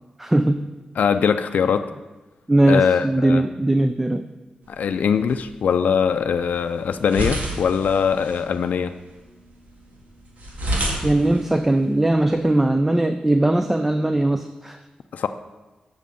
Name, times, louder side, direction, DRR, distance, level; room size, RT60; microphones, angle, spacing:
voice 1, 0.2-0.7 2.5-4.3 11.0-14.8, right 1 dB, 10° right, 9 dB, 0.4 m, -19 dB
voice 2, 1.0-1.9 2.7-3.5 4.7-8.9 15.1-15.3, left 6 dB, 80° left, 8 dB, 0.4 m, -21 dB
sound 1, 4.6-12.7, equal, 80° right, 2.1 m, -32 dB
7.5 x 6.4 x 6.9 m, 1.2 s
wide cardioid pair, 110°, 3 cm